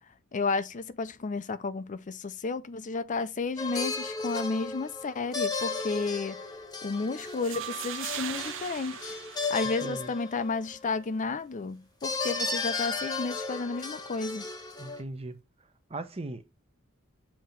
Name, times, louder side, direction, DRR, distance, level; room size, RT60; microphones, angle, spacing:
voice 1, 0.3-6.4 6.8-9.1 9.5-14.5, left 4 dB, 35° left, 0.5 m, -32 dB
sound 1, 3.6-10.9 12.0-15.0, left 3 dB, 20° left, 1.1 m, -35 dB
sound 2, 7.2-10.2, right 10 dB, 65° right, 0.6 m, -40 dB
sound 3, 7.5-9.7, right 10 dB, 50° right, 1.1 m, -45 dB
voice 2, 9.8-10.1 14.8-15.4 15.9-16.6, right 2 dB, 30° right, 0.8 m, -38 dB
7.4 x 2.9 x 5.1 m
head